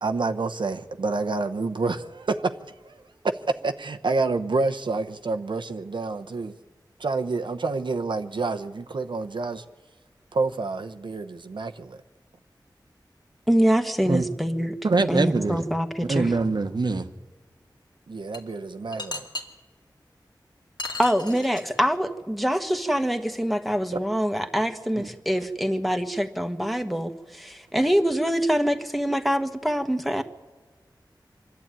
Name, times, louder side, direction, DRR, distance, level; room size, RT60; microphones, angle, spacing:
voice 1, 0.0-2.6 2.8-3.0 3.6-6.5 7.0-9.6 10.3-12.0 18.1-19.3, right 3 dB, 85° right, 0.9 m, -28 dB
voice 2, 13.5-14.7 15.1-16.4 21.0-30.2, equal, ahead, 1.4 m, -24 dB
voice 3, 14.8-15.6 16.1-17.1 25.0-25.1, right 3 dB, 65° right, 1.1 m, -23 dB
sound 1, 18.3-18.4 18.9-19.4 20.8-21.8, left 2 dB, 65° left, 2.3 m, -34 dB
25.5 x 11.5 x 9.0 m
wide cardioid pair, 70°, 8 cm